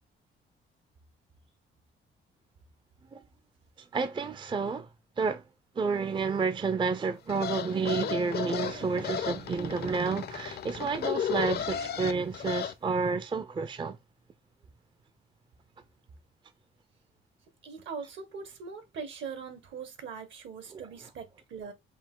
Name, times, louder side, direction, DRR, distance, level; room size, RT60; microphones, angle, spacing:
voice 1, 3.9-4.9 5.2-5.4 5.8-14.0 20.7-20.8, right 4 dB, 25° right, 0.5 m, -30 dB
sound 1, 7.3-12.7, left 9 dB, 55° left, 0.5 m, -34 dB
voice 2, 17.6-21.7, right 5 dB, 70° right, 1.5 m, -41 dB
5.3 x 2.6 x 3.7 m
cardioid pair, 90°, 20 cm